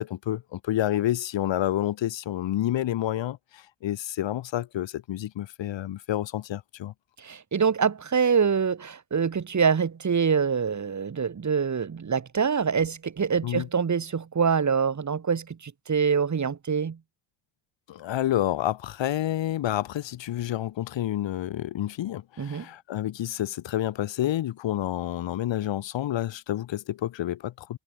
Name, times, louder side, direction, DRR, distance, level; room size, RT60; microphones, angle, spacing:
voice 1, 0.0-6.9 13.4-13.7 17.9-27.8, left 13 dB, 70° left, 6.3 m, -29 dB
voice 2, 7.2-17.0 22.4-22.7, right 6 dB, 35° right, 6.9 m, -25 dB
cardioid pair, 95°, 47 cm